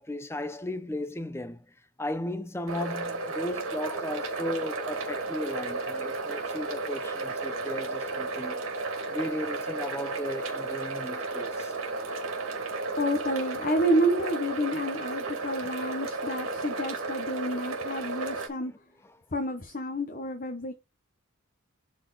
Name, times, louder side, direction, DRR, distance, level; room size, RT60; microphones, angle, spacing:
voice 1, 0.0-1.6 2.0-8.6 9.1-11.7, left 1 dB, 10° left, 0.6 m, -35 dB
sound 1, 2.7-18.5, right 3 dB, 75° right, 2.6 m, -33 dB
voice 2, 13.0-18.7 19.3-20.7, equal, 40° left, 0.9 m, -29 dB
10.0 x 4.3 x 4.1 m
head